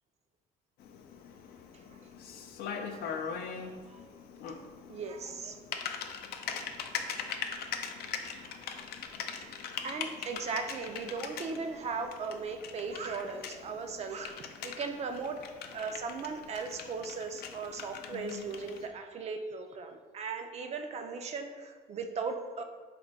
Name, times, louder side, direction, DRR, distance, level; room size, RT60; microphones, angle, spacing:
Typing, 0.8-18.9, left 6 dB, 65° left, 0.4 m, -41 dB
voice 1, 2.9-3.4 3.9-4.0 4.9-5.9 8.3-8.4 9.3-15.5 15.7-22.6, right 4 dB, 40° right, 6 dB, 0.3 m, -38 dB
4.3 x 2.2 x 3.9 m, 1.5 s
cardioid pair, 110°, 17 cm